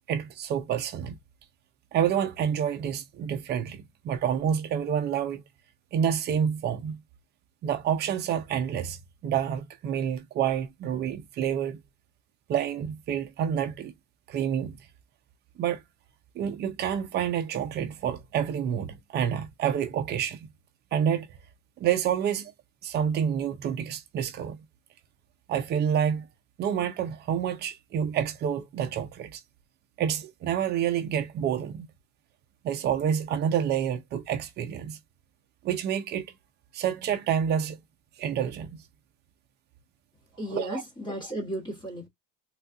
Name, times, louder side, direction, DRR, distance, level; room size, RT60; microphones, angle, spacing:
voice 1, 0.1-1.2 1.9-5.4 5.9-7.0 7.6-9.0 9.2-11.8 12.5-13.9 14.3-14.8 15.6-15.8 16.4-20.5 20.9-21.3 21.8-22.5 22.8-24.6 25.5-26.3 26.6-29.4 30.0-31.9 32.6-35.0 35.6-36.3 36.7-37.8 38.2-38.8 40.5-40.8, right 8 dB, 30° right, 0.4 m, -28 dB
voice 2, 40.4-42.1, right 1 dB, 15° left, 1.1 m, -34 dB
3.9 x 2.3 x 2.4 m
cardioid pair, 175°, 36 cm